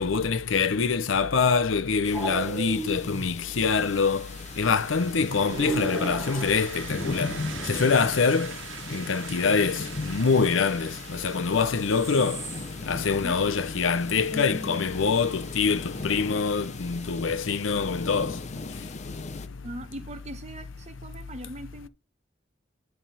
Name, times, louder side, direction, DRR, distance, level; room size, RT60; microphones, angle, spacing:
voice 1, 0.0-4.3 4.6-7.4 7.6-8.5 8.9-12.4 12.9-18.4, left 5 dB, 85° left, 0.6 m, -25 dB
sound 1, 2.0-19.5, left 3 dB, 40° left, 0.6 m, -38 dB
sound 2, 2.1-3.4 4.9-7.1 11.2-11.3 11.5-12.9 13.1-13.2 13.5-13.6 13.9-14.9 17.1-17.4, right 2 dB, 15° right, 1.3 m, -36 dB
sound 3, 3.8-17.2, right 6 dB, 85° right, 1.3 m, -44 dB
voice 2, 19.6-21.9, right 1 dB, 35° right, 1.0 m, -40 dB
10.0 x 3.5 x 7.0 m
head